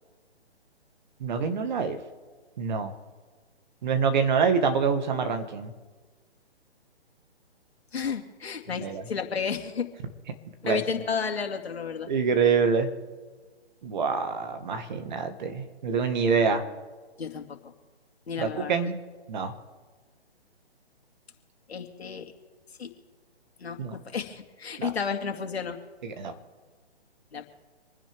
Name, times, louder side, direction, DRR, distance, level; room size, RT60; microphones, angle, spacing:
voice 1, 1.2-2.0 2.6-2.9 3.8-5.7 8.8-9.0 10.6-10.8 12.1-12.9 13.8-16.6 18.4-19.0 19.3-19.5 23.8-24.0 24.8-24.9 26.0-26.3, right 5 dB, 45° right, 7 dB, 1.8 m, -26 dB
voice 2, 7.9-9.9 10.6-12.1 17.2-17.7 18.3-18.9 21.7-22.3 22.8-22.9 23.6-25.8 27.3-27.4, left 6 dB, 70° left, 5 dB, 2.3 m, -32 dB
26.5 x 10.0 x 3.6 m, 1.4 s
hypercardioid pair, 145°, 33 cm